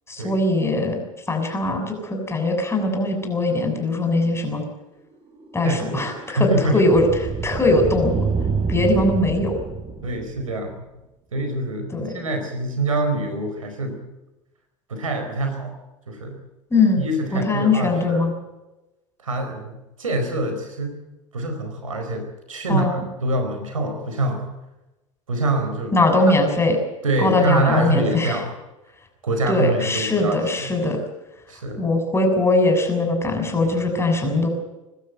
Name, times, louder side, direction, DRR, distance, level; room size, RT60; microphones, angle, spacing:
voice 1, 0.1-1.0 1.3-4.7 5.5-6.5 6.7-7.1 7.4-8.2 8.7-9.5 11.9-12.2 16.7-17.0 17.3-18.3 22.7-23.0 25.9-26.8 27.2-28.4 29.5-31.0 31.8-34.5, left 2 dB, 15° left, 4 dB, 7.2 m, -21 dB
sound 1, 5.1-10.7, right 5 dB, 35° right, 3.5 m, -28 dB
voice 2, 6.3-6.8 9.0-9.1 10.0-10.8 11.3-14.0 14.9-15.7 16.1-16.4 17.0-18.2 19.2-21.0 21.3-24.4 25.3-25.9 27.0-28.5 29.2-30.7 31.5-31.8, right 2 dB, 90° right, 5 dB, 4.5 m, -25 dB
24.0 x 12.5 x 9.2 m, 1.0 s
hypercardioid pair, 80°, 17 cm